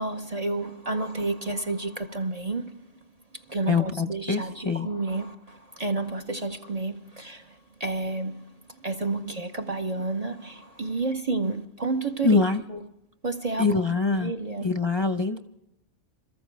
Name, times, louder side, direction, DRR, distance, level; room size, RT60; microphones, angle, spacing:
voice 1, 0.0-2.8 3.3-12.4 12.7-12.8 13.2-13.8 14.1-14.7, right 3 dB, 35° right, 0.8 m, -30 dB
voice 2, 3.7-4.9 12.2-12.6 13.6-14.3 14.6-15.4, left 4 dB, 25° left, 0.7 m, -24 dB
27.5 x 14.5 x 3.4 m
omnidirectional pair, 1.3 m